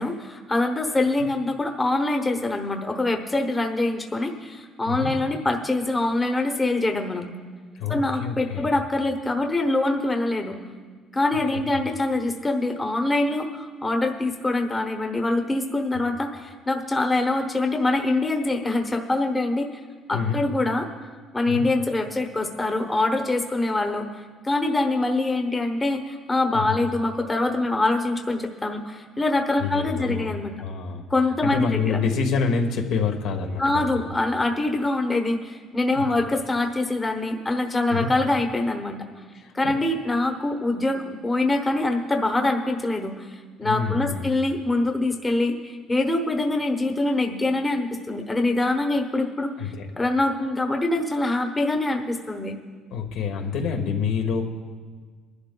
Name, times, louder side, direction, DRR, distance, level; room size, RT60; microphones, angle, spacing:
voice 1, 0.0-7.3 7.9-10.6 11.1-19.7 20.1-20.9 21.3-24.1 24.4-30.6 31.1-32.0 33.6-39.0 39.5-52.6, left 2 dB, 15° left, 3 dB, 0.9 m, -24 dB
voice 2, 7.7-8.7 11.5-11.6 15.9-16.0 20.1-20.4 21.5-21.7 26.5-26.8 29.6-30.3 30.6-31.0 31.4-34.1 35.9-36.0 37.9-38.1 39.4-39.7 43.6-44.3 49.6-49.9 52.9-54.4, left 5 dB, 80° left, 3 dB, 1.3 m, -27 dB
24.0 x 11.5 x 2.2 m, 1.5 s
cardioid pair, 145°, 0 cm